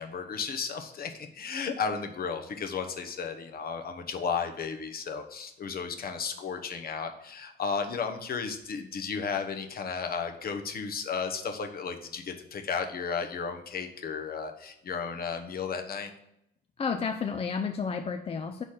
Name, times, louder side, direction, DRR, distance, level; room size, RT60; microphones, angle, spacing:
voice 1, 0.0-16.1, left 5 dB, 50° left, 5 dB, 0.9 m, -34 dB
voice 2, 16.8-18.6, left 5 dB, 30° left, 6 dB, 0.4 m, -31 dB
4.9 x 4.0 x 5.7 m, 0.79 s
cardioid pair, 90°, 20 cm